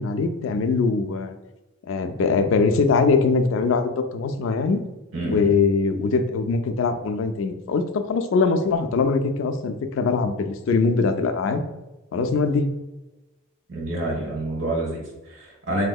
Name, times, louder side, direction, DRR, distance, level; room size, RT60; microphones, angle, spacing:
voice 1, 0.0-1.4 1.9-4.8 5.2-11.6 12.1-12.7, left 4 dB, 70° left, 8 dB, 0.3 m, -22 dB
voice 2, 5.1-5.5 13.7-15.8, right 1 dB, 70° right, -1 dB, 1.0 m, -28 dB
3.5 x 2.7 x 2.3 m, 1.0 s
head